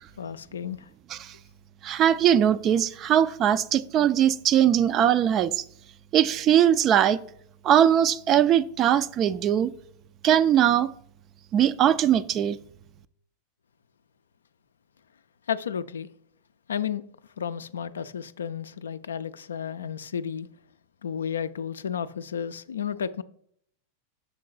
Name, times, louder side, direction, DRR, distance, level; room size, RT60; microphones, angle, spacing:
voice 1, 0.2-0.8 15.5-16.1 16.7-17.0 17.4-20.5 21.0-23.2, left 8 dB, 70° left, 0.3 m, -32 dB
voice 2, 1.8-5.6 6.1-7.2 7.6-9.7 10.2-10.9 11.5-12.6, right 10 dB, 30° right, 0.3 m, -21 dB
6.5 x 3.8 x 4.6 m
figure-of-eight pair, 90°, 0 cm